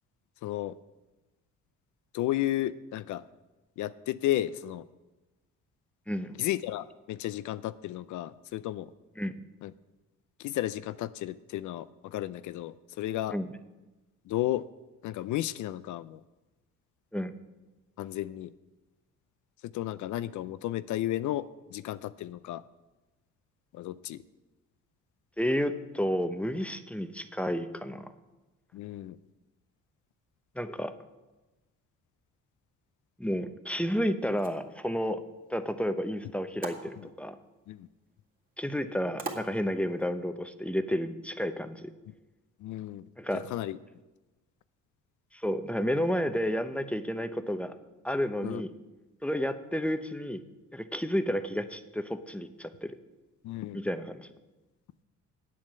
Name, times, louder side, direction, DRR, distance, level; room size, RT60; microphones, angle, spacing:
voice 1, 0.4-0.8 2.1-3.2 3.8-4.9 6.4-8.9 9.6-9.7 10.4-13.4 14.3-14.7 15.0-16.2 18.0-18.5 19.6-22.6 23.7-24.2 28.7-29.2 37.0-37.1 37.7-37.9 42.6-43.0 43.3-43.8 48.4-48.6 53.4-53.8, left 14 dB, 75° left, 15 dB, 0.5 m, -33 dB
voice 2, 25.4-28.1 30.6-30.9 33.2-35.2 35.5-37.4 38.6-41.9 43.2-43.4 45.3-47.7 48.0-48.7 49.2-50.4 50.7-53.0 53.7-54.3, equal, 5° left, 10 dB, 0.7 m, -31 dB
sound 1, 34.2-40.1, right 3 dB, 30° right, 2.1 m, -46 dB
8.6 x 7.6 x 7.4 m, 1.1 s
cardioid pair, 90°, 30 cm